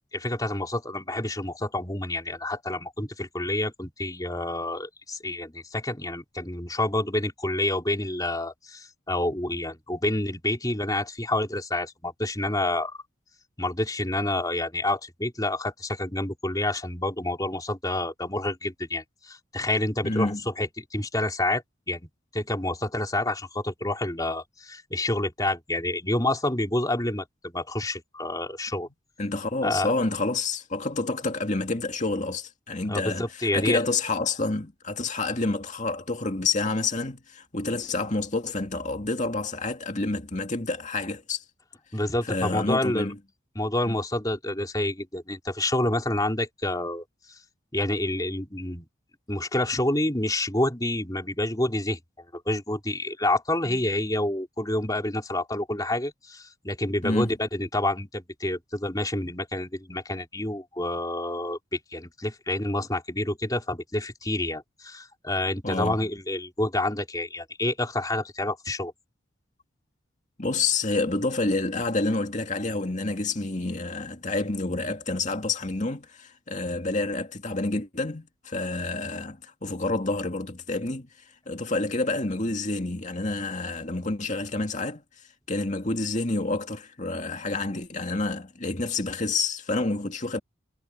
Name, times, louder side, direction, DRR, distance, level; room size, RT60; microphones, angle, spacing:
voice 1, 0.1-13.0 13.6-22.0 22.3-28.9 29.6-29.9 32.9-33.8 41.9-43.1 43.6-47.0 47.7-48.9 49.3-52.0 52.3-68.9, left 1 dB, 20° left, 3.9 m, -28 dB
voice 2, 20.0-20.4 29.2-41.4 42.3-43.2 43.9-44.0 53.6-53.7 57.0-57.3 59.2-59.3 65.6-66.0 70.4-81.1 81.5-85.0 85.5-90.4, left 3 dB, 35° left, 2.2 m, -28 dB
head